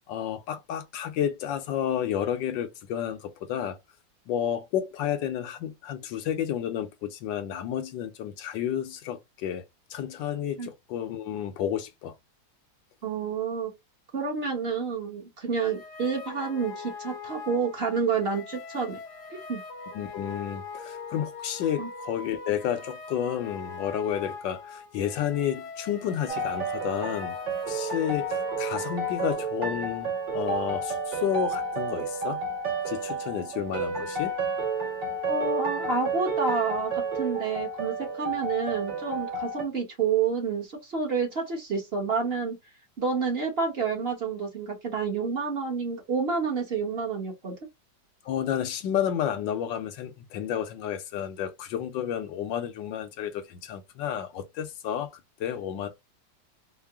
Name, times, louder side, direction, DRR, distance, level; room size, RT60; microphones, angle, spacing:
voice 1, 0.1-3.8 4.3-9.6 9.9-12.1 19.9-27.4 27.7-32.4 32.9-34.3 48.2-55.1 55.4-55.9, left 10 dB, 75° left, 1.4 m, -31 dB
voice 2, 13.0-13.7 14.1-19.0 19.5-19.6 21.8-21.9 35.3-42.5 43.0-47.5, right 5 dB, 40° right, 1.0 m, -29 dB
sound 1, 15.6-29.3, left 4 dB, 55° left, 0.9 m, -41 dB
sound 2, 26.3-39.6, right 3 dB, 70° right, 2.1 m, -31 dB
4.7 x 2.1 x 3.5 m
omnidirectional pair, 2.0 m